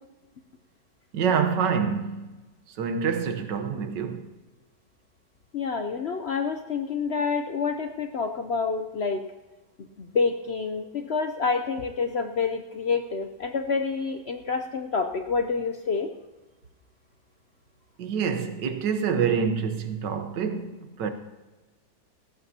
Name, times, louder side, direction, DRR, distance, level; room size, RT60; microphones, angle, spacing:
voice 1, 1.1-2.3 2.8-4.3 18.0-21.1, right 6 dB, 90° right, 1.7 m, -26 dB
voice 2, 5.5-9.2 10.0-16.1, left 5 dB, 55° left, 0.7 m, -28 dB
18.5 x 15.5 x 2.9 m
omnidirectional pair, 1.8 m